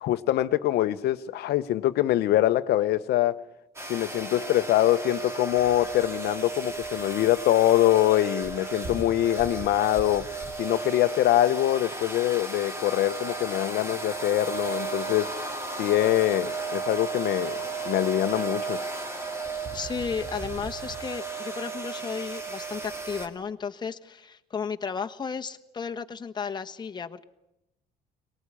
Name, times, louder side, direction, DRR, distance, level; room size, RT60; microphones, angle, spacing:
voice 1, 0.0-3.4 3.9-10.3 10.6-15.3 15.8-18.8, left 14 dB, 75° left, 0.8 m, -24 dB
sound 1, 3.8-23.3, right 4 dB, 15° right, 2.7 m, -34 dB
voice 2, 19.7-27.2, left 6 dB, 25° left, 1.2 m, -34 dB
23.0 x 19.0 x 9.9 m
cardioid pair, 110°, 17 cm